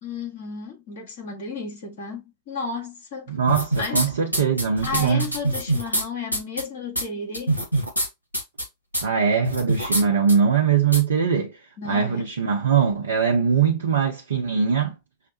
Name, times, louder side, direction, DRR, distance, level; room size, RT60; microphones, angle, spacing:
voice 1, 0.0-3.3 3.8-4.1 4.8-7.6 11.8-12.2, left 4 dB, 55° left, 1.8 m, -33 dB
voice 2, 3.3-5.3 9.0-11.6 11.8-14.9, right 6 dB, 65° right, 0.7 m, -21 dB
sound 1, 3.5-4.0 4.3-6.0 6.3-6.6 6.9-7.0 7.3-8.1 8.3-8.6 8.9-9.0 9.4-10.0 10.3-10.4 10.9-11.0, right 1 dB, 85° left, 1.1 m, -24 dB
5.7 x 2.2 x 2.8 m
figure-of-eight pair, 90°, 0 cm